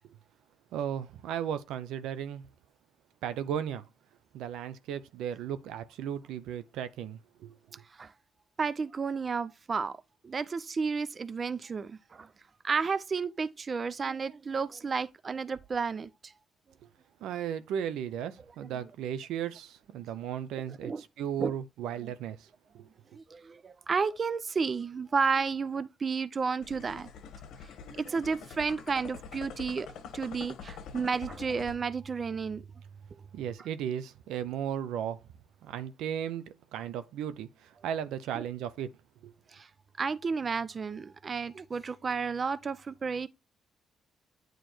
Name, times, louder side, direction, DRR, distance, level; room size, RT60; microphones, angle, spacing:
voice 1, 0.7-2.5 3.2-3.9 4.3-7.6 17.2-22.5 22.7-22.9 33.3-35.2 35.6-38.9 39.2-39.3, right 9 dB, 90° right, 0.7 m, -35 dB
voice 2, 8.6-10.0 10.2-12.3 12.6-16.3 20.7-21.0 21.4-21.5 23.1-27.1 27.8-29.9 30.1-32.6 33.1-33.2 38.3-38.4 39.5-39.7 40.0-43.3, right 5 dB, 40° right, 0.4 m, -32 dB
sound 1, 26.6-31.8, left 6 dB, 80° left, 1.1 m, -45 dB
9.2 x 3.1 x 4.4 m
cardioid pair, 90°, 0 cm